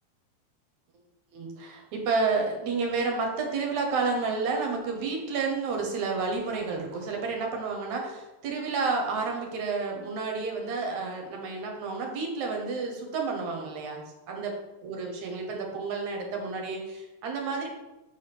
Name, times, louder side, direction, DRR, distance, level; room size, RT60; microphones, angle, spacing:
voice 1, 1.3-14.5 14.8-17.7, right 4 dB, 65° right, 1 dB, 2.2 m, -30 dB
5.2 x 4.7 x 6.0 m, 1.1 s
omnidirectional pair, 4.0 m